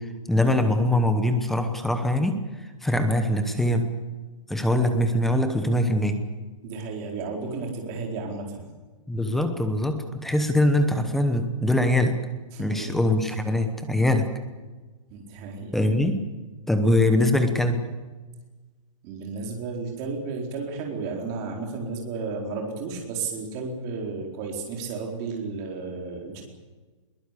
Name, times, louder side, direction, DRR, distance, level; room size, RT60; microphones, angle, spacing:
voice 1, 0.3-2.4 2.8-3.9 4.5-6.2 9.1-12.1 12.6-14.3 15.7-16.2 16.7-17.8, left 1 dB, ahead, 7 dB, 1.0 m, -22 dB
voice 2, 6.6-8.7 12.5-13.0 15.1-15.7 19.0-26.4, right 4 dB, 20° right, 1 dB, 4.3 m, -33 dB
22.0 x 20.5 x 8.4 m, 1.3 s
hypercardioid pair, 175°, 17 cm